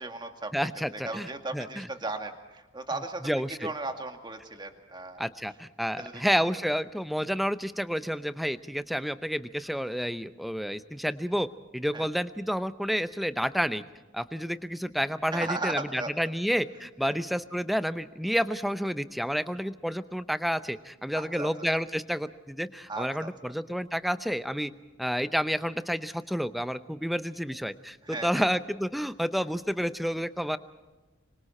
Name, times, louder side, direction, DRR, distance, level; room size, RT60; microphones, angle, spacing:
voice 1, 0.0-0.7 1.0-3.3 3.6-5.2 6.0-6.5 11.9-12.0 15.3-16.1 17.0-17.1 21.1-21.5 22.9-23.3 28.0-28.5, right 2 dB, 20° right, 5 dB, 2.1 m, -36 dB
voice 2, 0.5-1.9 3.2-3.7 5.2-11.5 11.7-13.8 14.1-24.7 25.0-30.6, equal, ahead, 12 dB, 0.7 m, -30 dB
26.0 x 25.5 x 4.3 m, 1.2 s
head